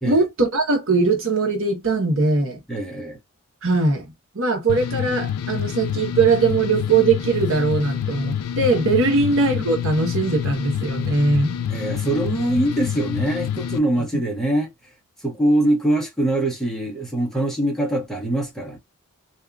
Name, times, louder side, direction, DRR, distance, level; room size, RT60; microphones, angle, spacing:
voice 1, 0.0-2.6 3.6-4.0 4.3-11.5, right 3 dB, 60° right, 1.1 m, -20 dB
voice 2, 2.7-3.2 9.0-9.1 11.7-14.7 15.2-18.8, right 1 dB, ahead, 0.8 m, -23 dB
sound 1, 4.7-13.8, left 9 dB, 85° left, 0.4 m, -27 dB
2.7 x 2.4 x 2.3 m
head